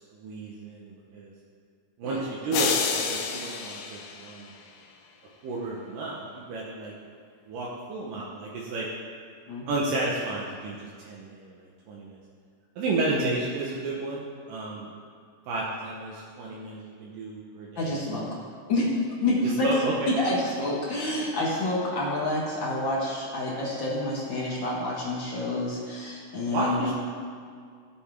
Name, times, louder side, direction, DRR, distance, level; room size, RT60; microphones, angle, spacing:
voice 1, 0.1-1.3 2.0-4.5 5.4-6.9 7.5-8.9 9.7-11.6 11.9-12.2 12.8-14.9 15.5-18.0 19.6-19.9 26.5-26.9, right 2 dB, 90° right, -5 dB, 2.7 m, -32 dB
sound 1, 2.5-4.8, left 6 dB, 90° left, 2.4 m, -30 dB
voice 2, 17.8-18.3 18.7-18.9 19.2-19.7 20.1-26.9, left 1 dB, 45° left, -5 dB, 1.8 m, -28 dB
15.0 x 7.7 x 3.6 m, 2.1 s
omnidirectional pair, 3.7 m